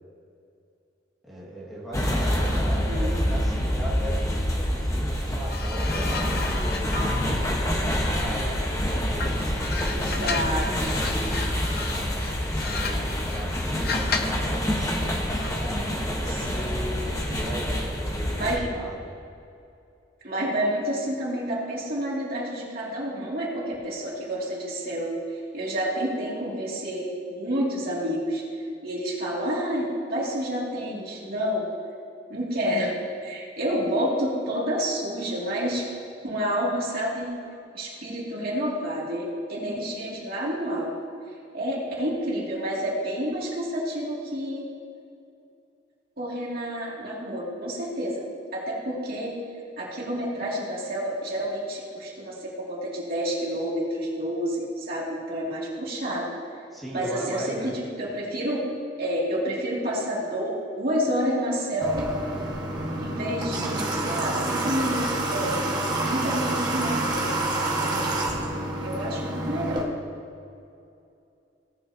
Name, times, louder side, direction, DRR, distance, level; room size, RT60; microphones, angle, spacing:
voice 1, 1.3-7.0 7.9-11.5 12.6-16.0 17.4-19.1 56.7-57.8, equal, ahead, -7 dB, 1.9 m, -38 dB
sound 1, 1.9-18.6, equal, 20° left, 1.1 m, -26 dB
sound 2, 5.5-8.7 9.2-14.5 15.4-15.7, left 5 dB, 55° left, 0.7 m, -35 dB
voice 2, 9.9-11.0 16.3-17.0 18.3-18.7 20.2-25.2 25.5-28.4 28.8-31.7 32.3-32.9 33.2-35.9 36.2-37.3 37.7-40.9 41.5-44.6 46.2-48.2 48.5-49.4 49.8-56.3 56.9-58.6 59.0-62.1 63.0-65.6 66.0-67.3 67.6-68.1 68.8-69.9, equal, 55° right, -5 dB, 2.6 m, -29 dB
Water / Water tap faucet, 61.8-69.8, right 2 dB, 25° right, 1.5 m, -28 dB
17.5 x 8.5 x 2.8 m, 2.6 s
head